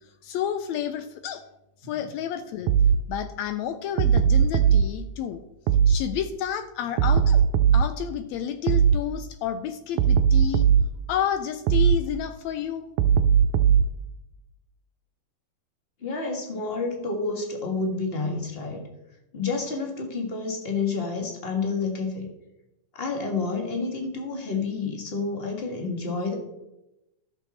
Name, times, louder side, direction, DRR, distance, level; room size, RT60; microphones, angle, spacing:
voice 1, 0.2-1.4 1.8-2.7 3.1-5.4 5.9-7.4 7.7-10.7 11.1-12.8, left 9 dB, 80° left, 10 dB, 1.6 m, -30 dB
sound 1, 2.7-3.0 4.0-4.8 5.7-6.0 7.0-7.9 8.7-9.0 10.0-10.9 11.7-12.0 13.0-13.9, right 8 dB, 80° right, 2.0 m, -18 dB
voice 2, 16.0-18.8 19.3-22.3 22.9-26.3, left 4 dB, 35° left, 2 dB, 1.0 m, -29 dB
12.5 x 6.9 x 4.2 m, 0.90 s
omnidirectional pair, 3.5 m